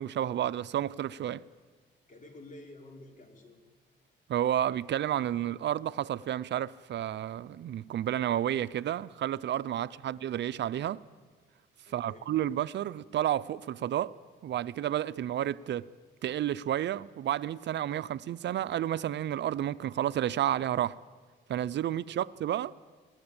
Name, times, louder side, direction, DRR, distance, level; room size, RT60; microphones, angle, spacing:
voice 1, 0.0-1.4 4.3-11.0 11.9-14.1 14.4-15.9 16.2-21.0 21.5-22.7, right 11 dB, 65° right, 0.6 m, -31 dB
voice 2, 2.1-3.6 10.0-10.1 11.8-12.3 21.9-22.2, left 2 dB, 40° left, 4.9 m, -51 dB
25.5 x 18.5 x 8.8 m
cardioid pair, 90°, 20 cm